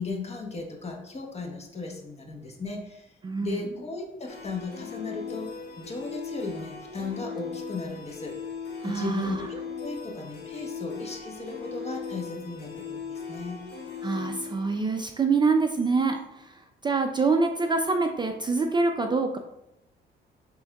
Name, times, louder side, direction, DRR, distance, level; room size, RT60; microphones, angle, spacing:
voice 1, 0.0-3.1 3.4-8.4 8.8-13.6 14.1-14.3, left 3 dB, 30° left, 1 dB, 1.0 m, -36 dB
voice 2, 3.2-3.6 8.8-9.5 14.0-19.4, right 4 dB, 25° right, 4 dB, 0.4 m, -26 dB
sound 1, 4.3-16.0, left 5 dB, 60° left, 1.3 m, -39 dB
5.9 x 3.5 x 2.2 m, 0.84 s
cardioid pair, 90°, 20 cm